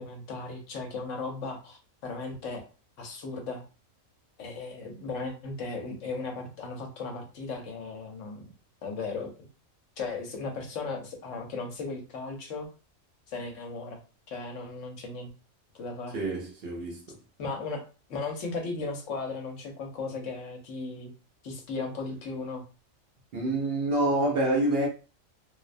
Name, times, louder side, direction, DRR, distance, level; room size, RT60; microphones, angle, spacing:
voice 1, 0.0-2.7 3.0-3.6 4.4-8.5 8.8-9.3 10.0-12.7 13.3-14.0 14.3-15.3 15.7-16.2 17.4-17.8 18.1-21.1 21.4-22.6, left 3 dB, 70° left, 1.0 m, -36 dB
voice 2, 16.1-17.2 23.3-24.9, right 1 dB, 60° right, 0.7 m, -27 dB
2.5 x 2.0 x 2.5 m
omnidirectional pair, 1.4 m